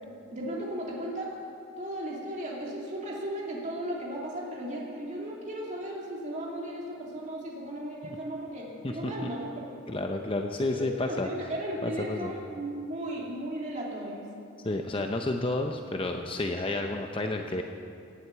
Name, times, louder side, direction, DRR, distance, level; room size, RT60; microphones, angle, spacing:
voice 1, 0.3-1.3 1.8-9.5 10.7-14.3, right 1 dB, 35° right, -3 dB, 2.6 m, -36 dB
voice 2, 9.9-11.5 11.8-12.3 14.6-17.6, left 2 dB, 25° left, 4 dB, 0.6 m, -31 dB
18.0 x 7.9 x 8.3 m, 2.4 s
head